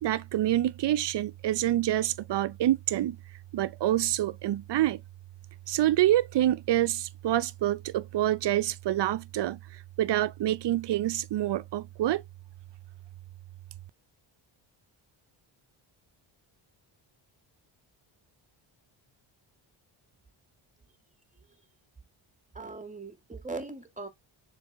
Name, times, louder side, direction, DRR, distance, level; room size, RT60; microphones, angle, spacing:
voice 1, 0.0-3.2 3.5-5.0 5.7-9.6 10.0-12.2, right 13 dB, 60° right, 0.6 m, -27 dB
voice 2, 22.5-24.1, right 3 dB, 15° right, 1.9 m, -39 dB
7.0 x 4.0 x 3.5 m
cardioid pair, 90°, 49 cm